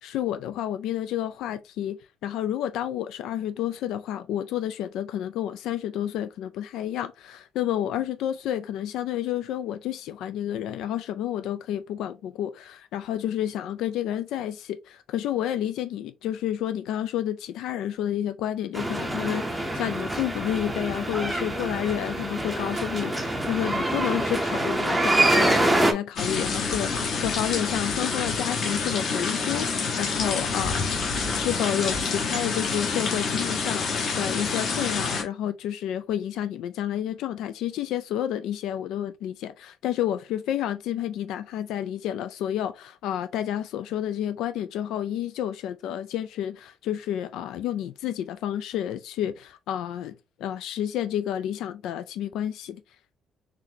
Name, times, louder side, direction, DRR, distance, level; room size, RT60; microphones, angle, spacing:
voice 1, 0.0-2.0 2.2-26.9 27.2-52.8, left 11 dB, 85° left, 0.3 m, -30 dB
sound 1, 18.7-25.9, right 1 dB, 5° right, 0.6 m, -25 dB
sound 2, 26.2-35.2, left 4 dB, 45° left, 1.0 m, -27 dB
4.0 x 3.1 x 2.7 m
cardioid pair, 180°, 0 cm